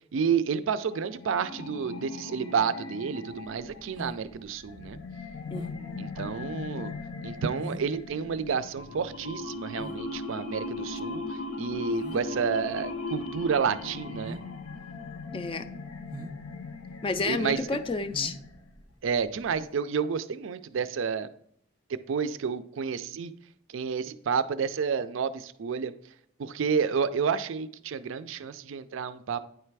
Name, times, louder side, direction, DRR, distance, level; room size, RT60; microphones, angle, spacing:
voice 1, 0.1-5.0 6.0-6.9 7.2-14.4 17.2-17.8 19.0-21.3 21.9-23.3 23.7-25.9 26.4-29.4, right 6 dB, 70° right, 13 dB, 0.4 m, -30 dB
sound 1, 0.9-18.8, left 3 dB, 85° left, 0.7 m, -39 dB
sound 2, 3.3-19.7, equal, 20° right, 0.6 m, -45 dB
voice 2, 5.5-6.0 15.3-15.6 17.0-18.4, left 3 dB, 25° left, 11 dB, 0.4 m, -31 dB
9.3 x 3.3 x 4.6 m, 0.67 s
head